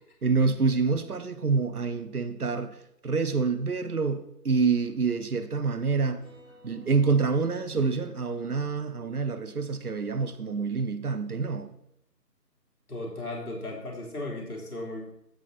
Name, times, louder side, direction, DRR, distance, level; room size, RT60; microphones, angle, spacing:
voice 1, 0.2-2.8 3.0-6.2 6.6-11.7, right 4 dB, 65° right, 1.1 m, -27 dB
sound 1, 5.8-10.4, equal, 5° left, 2.2 m, -57 dB
voice 2, 12.9-15.0, left 2 dB, 60° left, 4.0 m, -36 dB
15.5 x 5.5 x 4.2 m
figure-of-eight pair, 175°, 49 cm